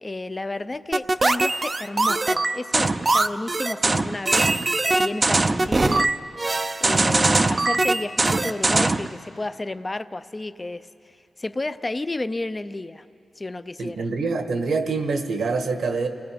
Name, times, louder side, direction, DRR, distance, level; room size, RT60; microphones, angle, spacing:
voice 1, 0.0-6.1 6.8-10.9 11.4-13.0 13.4-14.1, left 2 dB, 20° left, 12 dB, 0.5 m, -32 dB
sound 1, 0.9-9.1, right 2 dB, 25° right, 0.5 m, -21 dB
voice 2, 13.8-16.1, right 4 dB, 70° right, 6 dB, 1.5 m, -25 dB
29.5 x 19.0 x 5.2 m, 2.4 s
wide cardioid pair, 135°, 0 cm